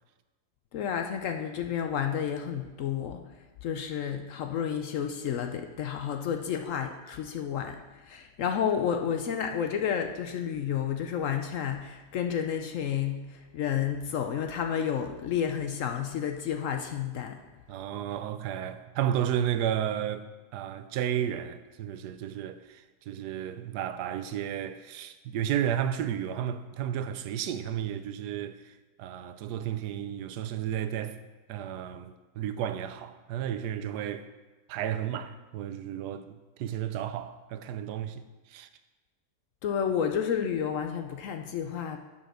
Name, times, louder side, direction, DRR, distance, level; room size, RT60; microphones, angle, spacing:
voice 1, 0.7-3.2 3.6-17.4 39.6-42.0, left 8 dB, 65° left, 0.8 m, -31 dB
voice 2, 17.7-20.2 20.5-31.2 31.5-34.2 34.7-38.7, right 10 dB, 85° right, 1.2 m, -33 dB
7.3 x 5.5 x 6.5 m
omnidirectional pair, 1.7 m